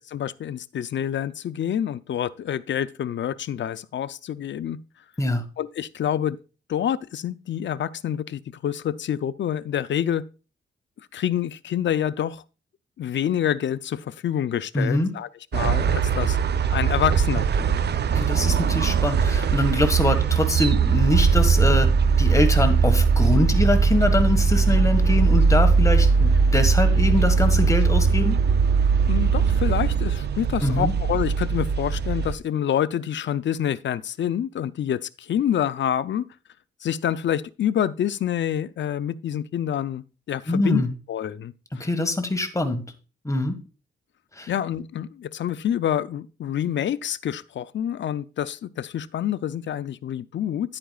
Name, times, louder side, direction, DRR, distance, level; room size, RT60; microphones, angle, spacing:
voice 1, 0.1-4.8 5.6-6.4 6.7-10.2 11.1-12.4 13.0-16.4 16.7-17.8 29.0-36.3 36.8-40.8 41.1-41.9 44.5-50.8, left 10 dB, 65° left, 0.5 m, -27 dB
voice 2, 14.7-15.1 18.1-21.9 22.2-28.4 30.6-30.9 40.5-40.9 41.7-42.8 43.2-43.6 44.3-44.5, left 2 dB, 15° left, 1.6 m, -24 dB
sound 1, 15.5-32.3, right 5 dB, 55° right, 0.6 m, -20 dB
10.0 x 8.8 x 2.4 m
cardioid pair, 85°, 20 cm